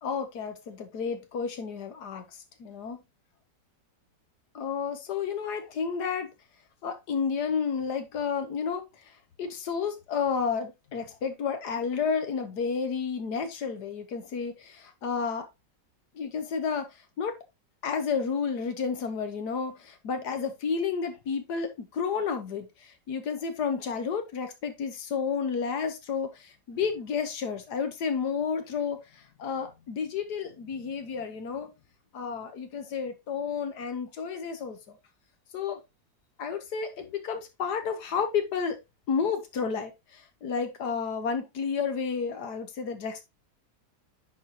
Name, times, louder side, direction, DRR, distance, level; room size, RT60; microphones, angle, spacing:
voice 1, 0.0-3.0 4.5-6.3 6.8-15.5 16.1-16.9 17.2-17.4 17.8-31.7 32.1-35.0 35.5-35.8 36.4-38.8 39.1-43.2, left 6 dB, 65° left, 1.6 m, -31 dB
10.0 x 4.2 x 2.8 m
omnidirectional pair, 1.9 m